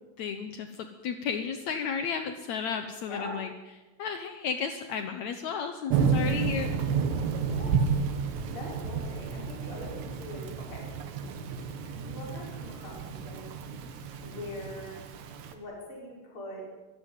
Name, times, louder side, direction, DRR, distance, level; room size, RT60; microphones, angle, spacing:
voice 1, 0.2-3.5 4.0-7.1, left 6 dB, 75° left, 7 dB, 1.7 m, -33 dB
voice 2, 3.1-3.4 7.4-7.8 8.5-10.9 11.9-13.6 14.2-15.0 15.5-16.6, left 1 dB, 30° left, -2 dB, 6.4 m, -42 dB
Thunder / Rain, 5.9-15.5, right 5 dB, 90° right, 4.0 m, -31 dB
25.5 x 15.0 x 9.2 m, 1.2 s
omnidirectional pair, 4.8 m